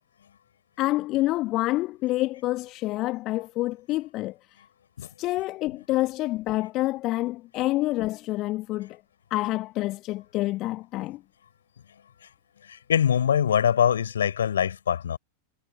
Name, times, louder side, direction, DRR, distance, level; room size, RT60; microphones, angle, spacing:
voice 1, 0.8-4.4 5.2-9.0 9.3-11.2, left 18 dB, 35° left, 1.2 m, -27 dB
voice 2, 12.7-15.2, left 8 dB, 65° left, 4.5 m, -23 dB
figure-of-eight pair, 90°, 0 cm